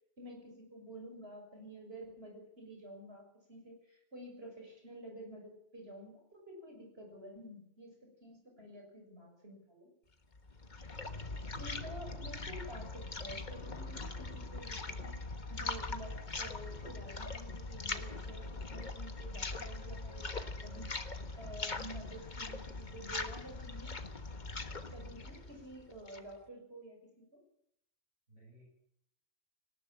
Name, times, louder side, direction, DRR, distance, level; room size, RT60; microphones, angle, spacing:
voice 1, 0.2-9.9 11.6-15.2 15.5-21.0 21.4-23.9 24.9-27.4, right 1 dB, 55° right, 1 dB, 7.1 m, -50 dB
sound 1, 10.3-26.4, left 3 dB, 40° left, 1.5 m, -41 dB
voice 2, 24.9-25.5 28.3-28.6, equal, 75° right, -4 dB, 8.5 m, -60 dB
19.5 x 18.5 x 7.4 m, 0.75 s
omnidirectional pair, 1.3 m